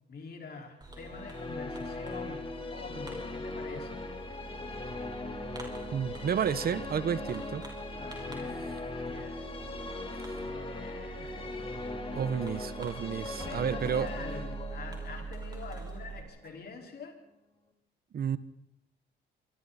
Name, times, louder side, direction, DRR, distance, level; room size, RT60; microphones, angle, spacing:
voice 1, 0.1-2.5 2.7-4.1 7.9-9.5 10.4-11.5 13.4-17.2, left 4 dB, 55° left, 2 dB, 4.8 m, -45 dB
Fireworks, 0.8-16.2, right 4 dB, 20° right, 5.4 m, -45 dB
sound 1, 0.9-16.9, left 2 dB, 25° left, 3.5 m, -40 dB
voice 2, 5.9-7.7 10.2-10.5 11.2-11.3 12.1-14.1 18.1-18.4, right 7 dB, 50° right, 15 dB, 1.0 m, -31 dB
26.5 x 24.0 x 4.2 m, 0.79 s
cardioid pair, 90°, 20 cm